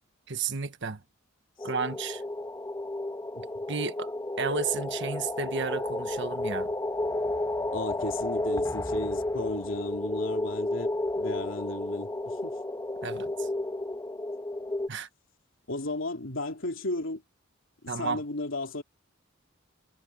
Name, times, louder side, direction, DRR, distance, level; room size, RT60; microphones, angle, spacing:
voice 1, 0.3-1.0 1.6-2.2 3.7-4.1 4.4-6.7 13.0-13.5 14.9-15.1 17.9-18.2, right 5 dB, 60° right, 1.4 m, -32 dB
sound 1, 1.6-14.9, left 1 dB, 15° left, 1.9 m, -32 dB
voice 2, 7.7-12.6 15.7-17.2 17.8-18.8, left 2 dB, 70° left, 3.2 m, -35 dB
head